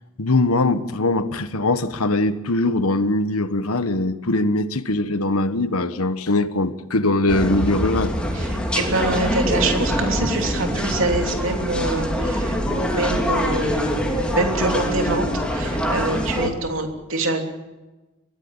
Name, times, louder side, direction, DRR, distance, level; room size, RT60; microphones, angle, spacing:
voice 1, 0.2-8.2, left 2 dB, 75° left, 11 dB, 1.3 m, -21 dB
sound 1, 7.3-16.5, equal, 5° left, 3.0 m, -24 dB
voice 2, 8.3-15.3 15.5-17.4, right 2 dB, 60° right, 3 dB, 3.2 m, -25 dB
23.5 x 16.5 x 8.9 m, 1.1 s
head